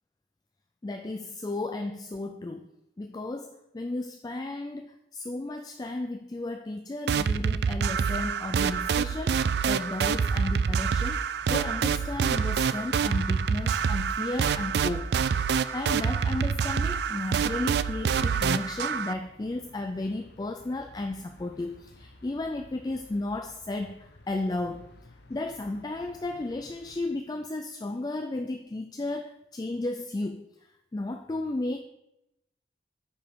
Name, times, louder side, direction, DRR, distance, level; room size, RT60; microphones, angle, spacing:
voice 1, 0.8-2.7 3.0-15.1 15.4-24.9 25.3-31.8, left 2 dB, 20° left, 6 dB, 0.3 m, -34 dB
sound 1, 7.1-19.1, right 6 dB, 65° right, 0.3 m, -26 dB
sound 2, 11.4-27.0, left 2 dB, 70° left, 0.9 m, -53 dB
8.8 x 5.1 x 4.6 m, 0.86 s
head